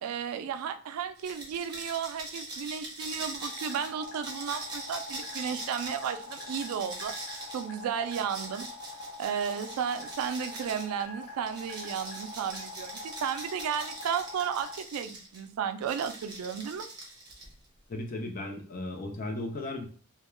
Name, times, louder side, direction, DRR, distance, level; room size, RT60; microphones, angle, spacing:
voice 1, 0.0-7.1 7.5-8.7 9.2-16.9, right 7 dB, 80° right, 10 dB, 0.3 m, -33 dB
sound 1, 1.2-10.9 11.5-15.4 15.8-17.6, right 2 dB, 20° right, 0.7 m, -42 dB
sound 2, 3.4-14.7, left 3 dB, 75° left, 0.8 m, -44 dB
voice 2, 17.9-19.8, left 2 dB, 40° left, 4 dB, 0.5 m, -36 dB
2.3 x 2.2 x 3.0 m, 0.41 s
head